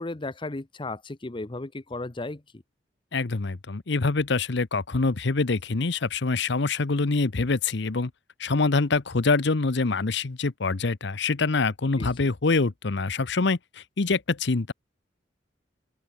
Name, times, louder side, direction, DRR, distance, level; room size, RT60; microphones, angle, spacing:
voice 1, 0.0-2.6 12.0-12.1, left 2 dB, 25° left, 0.8 m, -35 dB
voice 2, 3.1-8.1 8.4-14.7, left 3 dB, 65° left, 0.9 m, -25 dB
open air
head